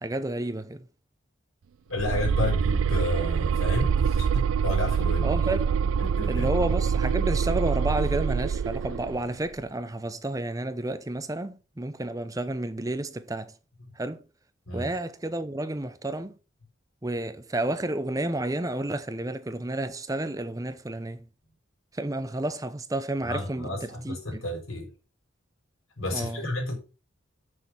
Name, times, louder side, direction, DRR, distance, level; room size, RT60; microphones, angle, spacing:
voice 1, 0.0-0.9 5.2-5.7 6.3-13.5 13.9-14.2 14.7-16.3 17.0-21.2 21.9-24.4 26.1-26.4, right 1 dB, 15° right, 0.6 m, -31 dB
voice 2, 1.9-5.3 6.0-6.5 14.7-14.9 23.2-24.9 26.0-26.7, left 2 dB, 85° left, 4.0 m, -31 dB
sound 1, 2.0-9.2, right 6 dB, 80° right, 0.3 m, -25 dB
7.3 x 6.3 x 5.8 m
head